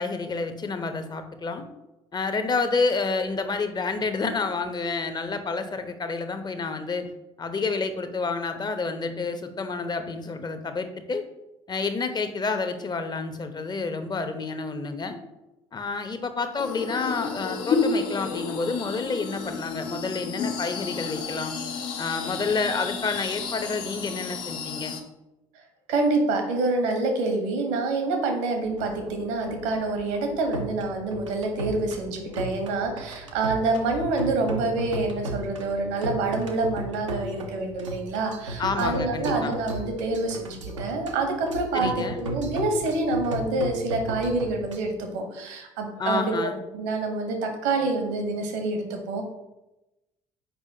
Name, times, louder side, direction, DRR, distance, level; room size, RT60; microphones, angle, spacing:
voice 1, 0.0-1.7 2.1-7.1 7.4-11.2 11.7-15.2 15.7-21.5 22.0-25.0 38.6-39.6 41.7-42.2 46.0-46.6, left 4 dB, 25° left, 8 dB, 0.8 m, -29 dB
sound 1, 16.6-25.0, left 5 dB, 60° left, 0.8 m, -31 dB
voice 2, 25.9-46.3 46.7-49.2, right 3 dB, 70° right, 4 dB, 1.1 m, -27 dB
sound 2, 28.6-44.9, right 1 dB, 85° right, 0.7 m, -36 dB
6.9 x 4.9 x 2.8 m, 0.96 s
figure-of-eight pair, 50°, 16 cm